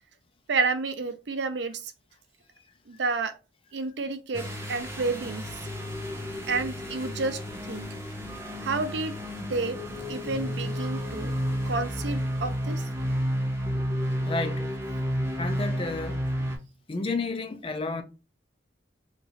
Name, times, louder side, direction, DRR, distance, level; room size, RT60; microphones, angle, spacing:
voice 1, 0.5-1.9 2.9-3.3 3.7-5.5 6.5-7.8 8.6-9.2 9.5-9.8 10.1-11.3 11.7-12.8 16.4-16.5, right 3 dB, 70° right, 0.5 m, -30 dB
sound 1, 4.3-16.6, equal, 15° right, 0.8 m, -31 dB
voice 2, 14.2-14.7 15.4-16.2 16.9-18.0, left 3 dB, 30° left, 0.4 m, -31 dB
2.9 x 2.6 x 4.1 m
head